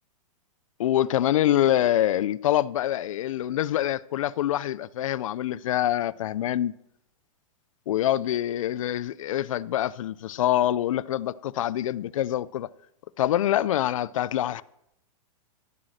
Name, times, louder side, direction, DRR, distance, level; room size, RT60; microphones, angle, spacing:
voice 1, 0.8-6.7 7.9-12.7 13.2-14.6, left 12 dB, 70° left, 0.5 m, -25 dB
14.0 x 8.3 x 6.5 m
supercardioid pair, 170°, 18 cm